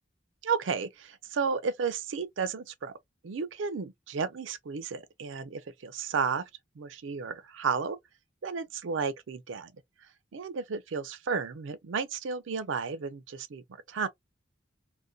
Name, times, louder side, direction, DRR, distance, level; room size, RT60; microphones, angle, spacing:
voice 1, 0.4-2.9 3.2-6.5 6.8-8.0 8.4-9.7 10.3-13.6 13.9-14.1, right 5 dB, 90° right, 0.4 m, -33 dB
2.5 x 2.1 x 2.2 m
head